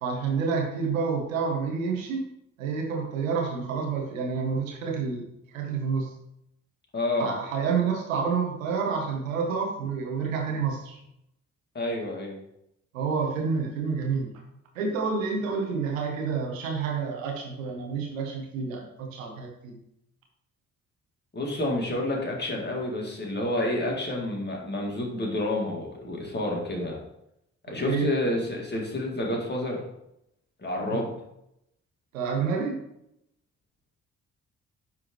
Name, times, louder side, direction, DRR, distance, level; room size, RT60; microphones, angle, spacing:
voice 1, 0.0-2.2 2.6-5.3 5.5-6.1 7.2-11.0 12.9-14.3 14.7-19.8 27.7-28.1 30.9-31.0 32.1-32.8, right 5 dB, 80° right, 1 dB, 1.1 m, -29 dB
voice 2, 6.9-7.3 11.7-12.4 21.3-27.0 27.7-29.8 30.6-31.1, left 1 dB, 25° left, -1 dB, 2.1 m, -29 dB
9.2 x 3.7 x 3.1 m, 0.80 s
figure-of-eight pair, 40°, 39 cm